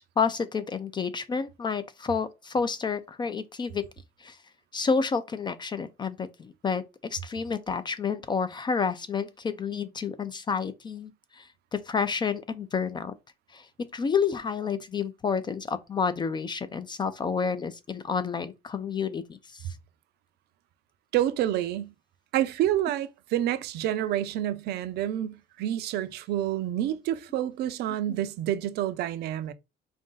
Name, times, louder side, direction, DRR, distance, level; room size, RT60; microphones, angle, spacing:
voice 1, 0.0-3.8 4.2-4.4 4.7-11.1 11.4-13.1 13.5-13.7 13.9-19.3 19.5-19.6, left 5 dB, 25° left, 0.4 m, -29 dB
voice 2, 21.1-21.9 22.3-29.5, right 12 dB, 70° right, 0.5 m, -28 dB
3.6 x 2.6 x 3.8 m
cardioid pair, 110°, 17 cm